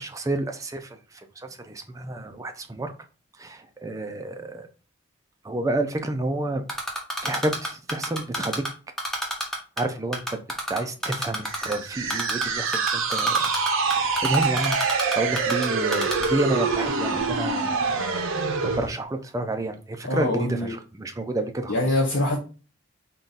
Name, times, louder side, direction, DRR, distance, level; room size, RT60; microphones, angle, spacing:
voice 1, 0.0-2.9 3.4-4.7 5.4-6.6 7.2-8.6 9.8-10.4 10.7-13.5 13.8-14.8 15.1-17.8 18.6-21.9, right 2 dB, 15° right, 0.3 m, -30 dB
Typing, 6.7-8.7 9.0-9.8 10.1-11.7 12.1-12.4 12.7-15.6 15.9-16.3, equal, ahead, 0.7 m, -28 dB
sound 1, 11.5-18.9, right 4 dB, 85° right, 0.6 m, -25 dB
voice 2, 20.0-20.7 21.7-22.4, left 1 dB, 75° left, 0.8 m, -24 dB
3.8 x 2.3 x 3.9 m
head